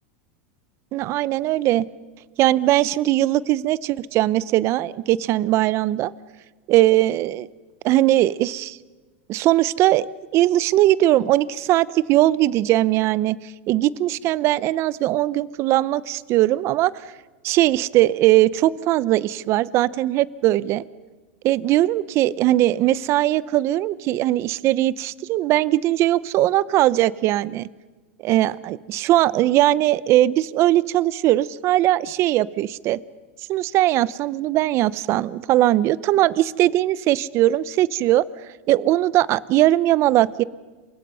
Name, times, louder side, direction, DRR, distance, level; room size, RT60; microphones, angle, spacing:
voice 1, 0.9-1.8 2.4-6.1 6.7-7.5 7.8-8.8 9.3-10.1 10.3-13.4 13.7-17.0 17.4-20.8 21.4-27.7 28.2-33.0 33.5-38.2 38.7-40.4, right 15 dB, 40° right, 19 dB, 0.7 m, -20 dB
28.0 x 24.5 x 5.6 m, 1.3 s
supercardioid pair, 130°, 7 cm